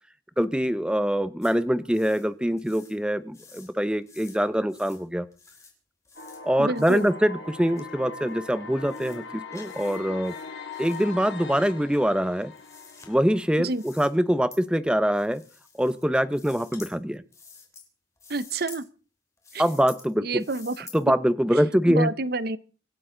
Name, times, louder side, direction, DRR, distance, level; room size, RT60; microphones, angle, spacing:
voice 1, 0.4-5.3 6.4-10.3 10.8-12.5 13.1-15.4 15.7-17.2 19.6-20.4 20.9-22.1, equal, 5° right, 0.7 m, -24 dB
sound 1, 1.4-1.5 1.9-2.3 2.6-3.0 3.3-3.7 4.0-4.4 4.7-5.0 5.3-5.7 6.1-6.4 6.8-7.1 7.8-7.9 8.3-8.4 8.8-9.2 9.5-10.0 10.2-11.0 11.9-13.1 13.7-14.1 14.5-14.6 15.1-16.0 16.3-16.9 17.3-17.9 18.2-18.8 19.4-20.1 20.4-21.0, left 5 dB, 15° left, 3.1 m, -49 dB
sound 2, 6.2-14.1, left 4 dB, 75° left, 2.7 m, -41 dB
voice 2, 6.6-7.0 13.6-13.8 18.3-18.8 19.5-19.6 20.2-20.9 21.9-22.6, right 3 dB, 55° right, 0.7 m, -28 dB
25.5 x 12.5 x 3.8 m
head